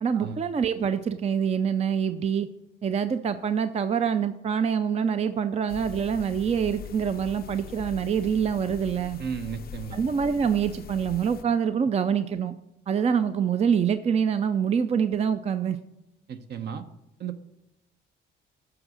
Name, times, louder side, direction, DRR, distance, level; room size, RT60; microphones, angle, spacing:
voice 1, 0.0-2.5 2.8-9.2 9.9-12.5 12.9-15.8, right 7 dB, 35° right, 11 dB, 0.4 m, -25 dB
sound 1, 5.7-11.4, left 9 dB, 50° left, 0.4 m, -42 dB
voice 2, 9.2-10.0 16.3-16.8 17.2-17.4, right 7 dB, 55° right, 9 dB, 0.8 m, -34 dB
7.8 x 4.9 x 6.1 m, 0.88 s
cardioid pair, 90°, 20 cm